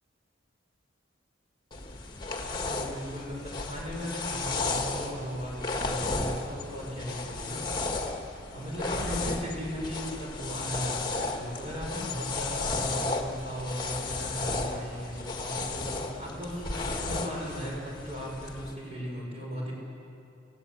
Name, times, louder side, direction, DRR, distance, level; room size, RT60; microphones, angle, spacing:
sound 1, 1.7-18.7, left 3 dB, 20° left, 1.7 m, -34 dB
voice 1, 2.7-7.6 8.0-19.7, equal, 30° right, -3 dB, 6.2 m, -37 dB
29.5 x 16.5 x 8.7 m, 2.7 s
head